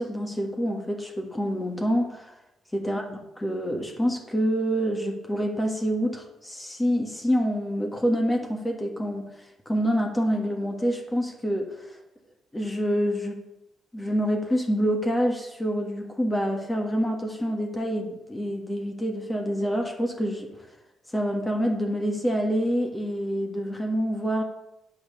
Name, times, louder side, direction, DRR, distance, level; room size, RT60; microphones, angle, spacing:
voice 1, 0.0-2.3 2.7-9.3 9.6-11.9 12.5-13.4 13.9-20.5 21.1-24.4, equal, 15° left, 2 dB, 1.6 m, -27 dB
8.7 x 5.6 x 6.9 m, 0.93 s
cardioid pair, 90°, 0 cm